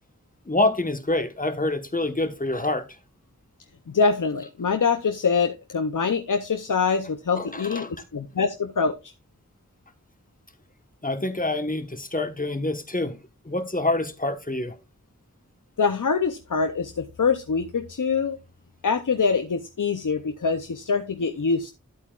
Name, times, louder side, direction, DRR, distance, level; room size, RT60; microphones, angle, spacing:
voice 1, 0.5-2.8 7.3-7.9 11.0-13.2 13.4-14.7, left 2 dB, 25° left, 1.3 m, -26 dB
voice 2, 3.9-7.9 8.1-9.1 15.8-18.4 18.8-21.7, left 5 dB, 85° left, 0.7 m, -24 dB
11.5 x 8.3 x 2.4 m
wide cardioid pair, 50°, 31 cm